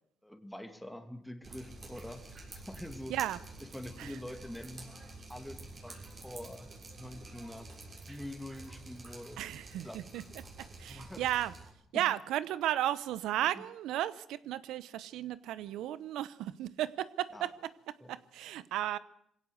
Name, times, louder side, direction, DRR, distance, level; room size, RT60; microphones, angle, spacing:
voice 1, 0.2-3.2 3.7-4.9 5.3-6.0 6.2-6.7 7.0-7.7 8.1-9.4 9.8-10.0 10.9-11.3 11.9-12.1 13.5-13.6 17.3-17.5 18.0-18.1, left 1 dB, 5° left, 6 dB, 2.5 m, -45 dB
Drip, 1.4-11.7, right 2 dB, 40° right, 6.5 m, -49 dB
voice 2, 9.4-10.2 10.6-11.5 11.9-19.0, right 12 dB, 90° right, 17 dB, 0.9 m, -34 dB
21.5 x 17.0 x 8.0 m, 0.70 s
cardioid pair, 90°, 0 cm